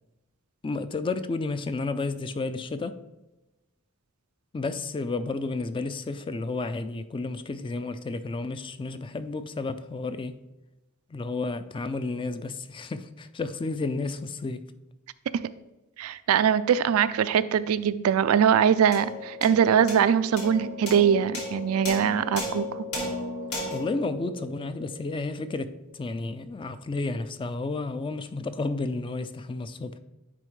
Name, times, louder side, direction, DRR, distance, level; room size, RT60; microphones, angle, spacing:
voice 1, 0.6-3.0 4.5-10.4 11.1-14.6 23.7-30.0, left 3 dB, 25° left, 0.3 m, -32 dB
voice 2, 16.0-22.8, right 8 dB, 80° right, 0.3 m, -22 dB
sound 1, 18.9-25.5, left 1 dB, 80° left, 1.9 m, -36 dB
9.8 x 4.2 x 3.1 m
head